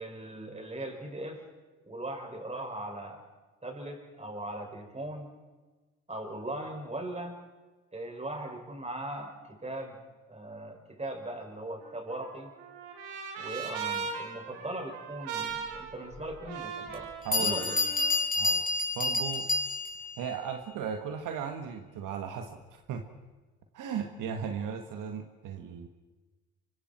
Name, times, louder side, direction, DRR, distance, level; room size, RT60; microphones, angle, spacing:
voice 1, 0.0-1.4 1.8-3.2 3.6-5.3 6.1-7.4 7.9-10.0 10.3-12.5 13.4-17.1 17.4-17.8, right 1 dB, 20° right, 2 dB, 6.4 m, -39 dB
Trumpet, 11.8-18.1, right 6 dB, 90° right, 3.6 m, -39 dB
Bell, 16.1-16.2 16.9-17.0 17.3-20.1, left 3 dB, 25° left, 5.0 m, -29 dB
voice 2, 17.2-17.7 18.4-18.6 19.0-19.5 20.2-23.0 23.7-25.9, right 7 dB, 70° right, 5 dB, 1.8 m, -36 dB
25.0 x 24.5 x 4.6 m, 1.3 s
supercardioid pair, 65°, 33 cm